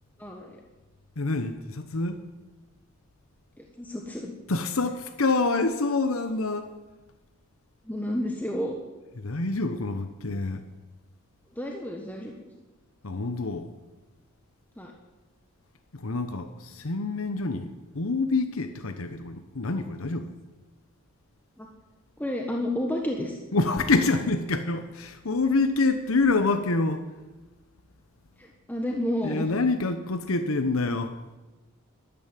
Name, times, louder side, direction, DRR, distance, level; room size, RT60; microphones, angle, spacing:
voice 1, 0.2-0.5 3.6-4.3 7.8-8.7 11.5-12.3 14.8-14.9 21.6-21.7 22.2-23.4 28.4-29.5, left 1 dB, 10° left, 1 dB, 1.4 m, -31 dB
voice 2, 1.2-2.2 4.5-6.7 9.2-10.6 13.0-13.7 15.9-20.3 23.5-27.0 29.2-31.2, left 3 dB, 75° left, 9 dB, 1.0 m, -26 dB
12.5 x 12.5 x 9.2 m, 1.1 s
head